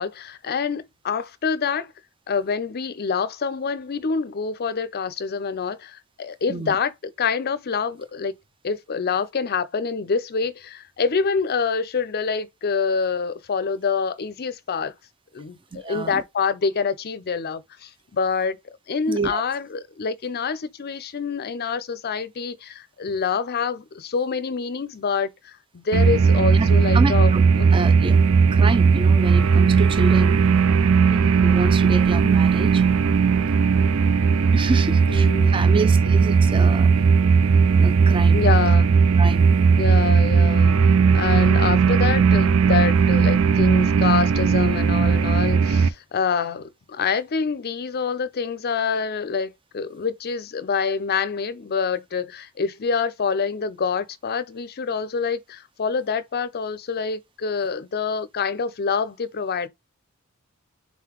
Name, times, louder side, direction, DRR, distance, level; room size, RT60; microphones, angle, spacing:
voice 1, 0.0-1.9 2.3-8.3 8.6-14.9 15.3-18.6 18.9-27.3 27.6-27.7 31.1-31.6 35.1-35.8 38.3-38.9 39.8-59.7, left 5 dB, 50° left, 0.5 m, -26 dB
voice 2, 15.7-16.2 19.1-19.4 26.5-27.4 27.7-28.2 28.5-30.4 31.4-32.8 34.5-37.0 37.7-38.4 39.2-39.6, right 3 dB, 25° right, 0.6 m, -28 dB
sound 1, 25.9-45.9, right 5 dB, 70° right, 0.5 m, -17 dB
4.1 x 3.8 x 3.0 m
head